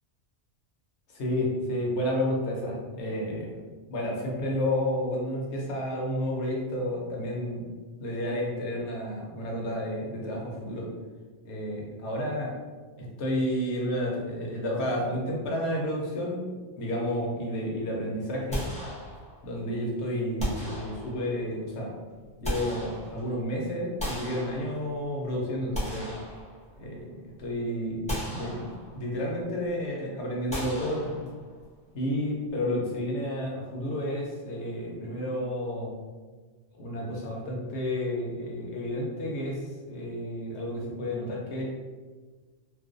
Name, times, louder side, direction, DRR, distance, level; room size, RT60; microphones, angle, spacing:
voice 1, 1.1-3.6 3.9-7.6 8.0-10.9 11.4-12.5 13.2-16.5 16.8-18.7 19.4-22.0 22.4-26.1 26.8-28.7 28.9-31.2 31.9-35.9 36.8-41.6, left 1 dB, 80° left, -2 dB, 0.9 m, -31 dB
sound 1, 18.5-19.5 20.4-21.4 22.1-23.4 24.0-25.1 25.5-27.0 27.4-27.5 28.1-29.1 30.5-31.6, equal, 10° left, 0.6 m, -36 dB
2.4 x 2.2 x 2.5 m, 1.4 s
omnidirectional pair, 1.1 m